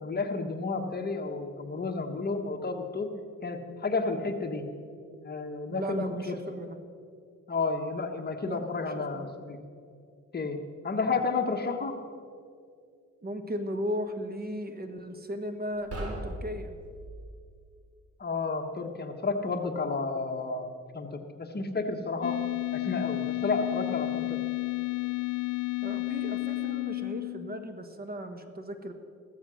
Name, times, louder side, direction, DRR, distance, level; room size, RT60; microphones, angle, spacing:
voice 1, 0.0-3.1 3.4-4.6 5.2-6.3 7.5-9.6 10.3-10.6 10.8-12.0 18.2-22.4 22.7-24.4, left 4 dB, 30° left, 5 dB, 1.3 m, -31 dB
voice 2, 5.7-6.8 8.5-9.3 13.2-16.7 25.8-28.9, equal, 30° right, 8 dB, 1.3 m, -36 dB
sound 1, 15.7-17.4, right 1 dB, 55° right, 3.6 m, -39 dB
sound 2, 22.2-27.8, left 24 dB, 55° left, 0.6 m, -32 dB
15.0 x 13.5 x 6.3 m, 2.3 s
cardioid pair, 105°, 30 cm